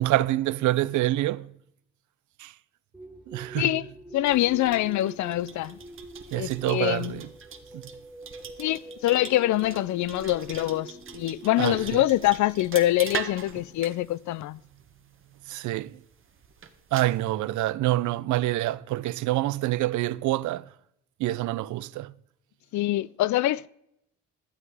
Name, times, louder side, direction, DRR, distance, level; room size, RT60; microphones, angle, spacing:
voice 1, 0.0-1.5 2.4-2.5 3.3-3.7 6.3-7.3 7.7-7.8 11.6-12.0 15.5-16.0 16.9-20.7 21.2-22.1, right 16 dB, 75° right, 0.5 m, -26 dB
sound 1, 2.9-14.0, right 1 dB, 10° right, 1.8 m, -46 dB
voice 2, 3.6-3.9 4.1-5.8 6.3-7.2 8.6-14.6 22.7-23.7, left 15 dB, 70° left, 0.5 m, -25 dB
sound 2, 4.2-17.2, right 6 dB, 45° right, 1.3 m, -42 dB
12.5 x 7.9 x 4.8 m
cardioid pair, 90°, 30 cm